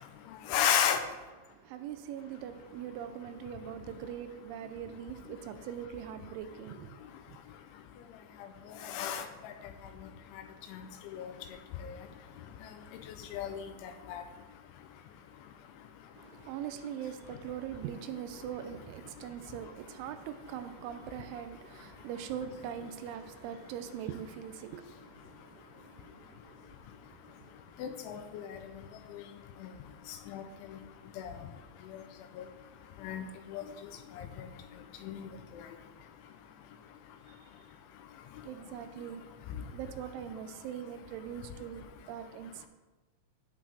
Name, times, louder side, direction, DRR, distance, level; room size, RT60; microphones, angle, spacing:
voice 1, 0.5-1.0 8.8-9.5 10.7-10.8 11.1-11.3 11.8-12.0 13.3-14.2 27.8-28.6 29.1-29.2 30.3-30.4 31.2-31.3 33.0-33.6 34.2-34.3 35.0-35.6, left 9 dB, 80° left, 7 dB, 3.1 m, -33 dB
voice 2, 1.7-6.9 16.4-24.8 38.5-39.2 39.7-42.7, right 9 dB, 80° right, 9 dB, 3.0 m, -41 dB
13.5 x 8.3 x 3.6 m, 1.1 s
omnidirectional pair, 5.6 m